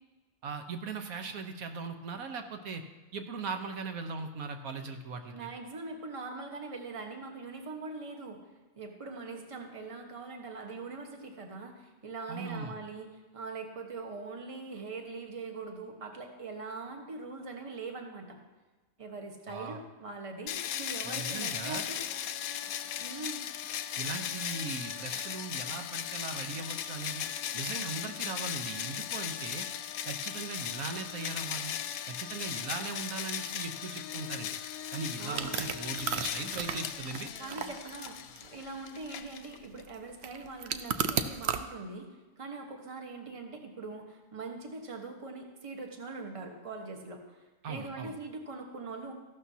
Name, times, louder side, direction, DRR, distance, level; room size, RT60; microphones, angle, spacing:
voice 1, 0.4-2.8 3.1-5.5 12.3-12.8 19.5-19.8 21.0-21.9 24.0-27.2 27.5-29.7 30.1-31.7 32.1-34.6 34.9-37.3 47.6-48.1, right 4 dB, 85° right, 6 dB, 1.3 m, -39 dB
voice 2, 5.3-8.4 8.8-13.1 13.3-18.4 19.0-22.0 23.0-23.4 35.2-35.6 37.4-42.1 42.4-49.1, right 3 dB, 25° right, 2 dB, 1.1 m, -42 dB
sound 1, 20.5-39.8, left 10 dB, 85° left, 1.0 m, -37 dB
sound 2, 35.3-41.6, right 7 dB, 60° right, 0.8 m, -35 dB
14.5 x 12.0 x 2.8 m, 1.2 s
omnidirectional pair, 1.5 m